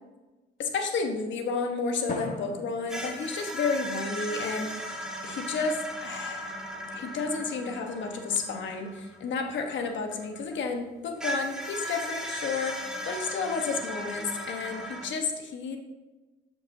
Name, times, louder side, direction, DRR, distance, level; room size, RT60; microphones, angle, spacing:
voice 1, 0.6-6.5 6.9-15.8, left 4 dB, 70° left, 4 dB, 1.1 m, -31 dB
Drum, 2.1-4.4, left 2 dB, 40° left, 1.3 m, -40 dB
sound 1, 2.9-10.6 11.2-15.1, equal, 5° right, 1.6 m, -37 dB
12.5 x 5.2 x 2.7 m, 1.2 s
cardioid pair, 90°, 20 cm